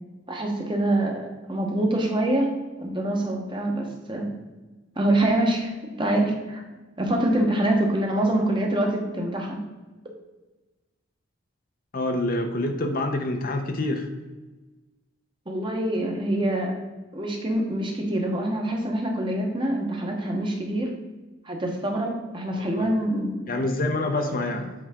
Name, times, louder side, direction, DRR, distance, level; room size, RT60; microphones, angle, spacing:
voice 1, 0.3-2.5 2.8-4.3 5.0-5.7 6.0-6.6 7.0-9.6 15.5-16.7 17.1-20.9 21.4-23.3, right 1 dB, 25° right, 1 dB, 1.0 m, -25 dB
voice 2, 11.9-14.1 22.5-22.9 23.5-24.7, left 2 dB, 45° left, 4 dB, 0.7 m, -27 dB
8.0 x 4.7 x 3.6 m, 1.2 s
head